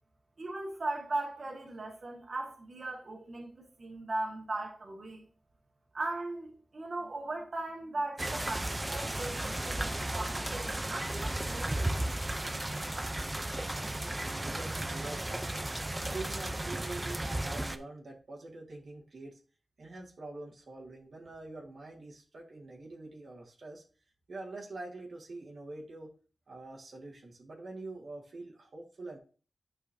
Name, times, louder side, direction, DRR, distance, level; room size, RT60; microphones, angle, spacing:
voice 1, 0.4-5.3 5.9-12.1, right 2 dB, 60° right, 1.8 m, -38 dB
sound 1, 8.2-17.8, right 1 dB, 20° right, 0.6 m, -34 dB
voice 2, 14.1-15.4 16.0-19.4 19.8-23.8 24.3-26.1 26.5-29.2, right 2 dB, 75° right, 1.7 m, -45 dB
9.2 x 5.3 x 2.8 m
wide cardioid pair, 70°, 0 cm